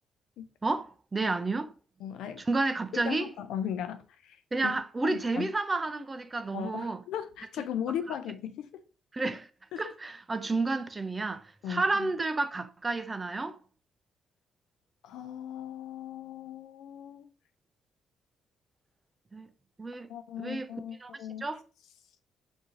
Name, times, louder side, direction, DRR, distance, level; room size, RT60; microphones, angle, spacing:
voice 1, 0.6-1.7 2.5-3.3 4.5-7.0 9.1-9.5 9.8-13.6 19.3-19.5 19.8-20.1 20.4-20.7 21.0-21.1 21.4-21.6, right 3 dB, 25° right, 0.4 m, -31 dB
voice 2, 2.0-2.4 2.9-4.4 4.6-4.7 5.0-5.5 6.5-8.7 9.7-9.8 11.6-12.1 15.0-17.3 20.1-21.5, left 9 dB, 85° left, 0.4 m, -37 dB
3.0 x 2.6 x 3.6 m
cardioid pair, 90°, 0 cm